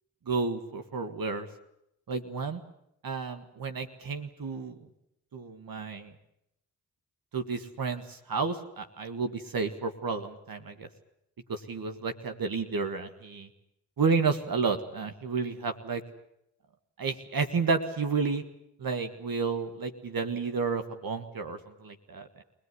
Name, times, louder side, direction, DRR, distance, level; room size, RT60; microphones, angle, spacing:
voice 1, 0.3-1.5 2.1-2.6 3.0-4.8 5.3-6.1 7.3-10.9 11.5-13.5 14.0-16.0 17.0-18.4 18.8-22.4, right 4 dB, 70° right, 7 dB, 1.8 m, -31 dB
23.5 x 18.5 x 9.8 m, 0.80 s
cardioid pair, 50°, 36 cm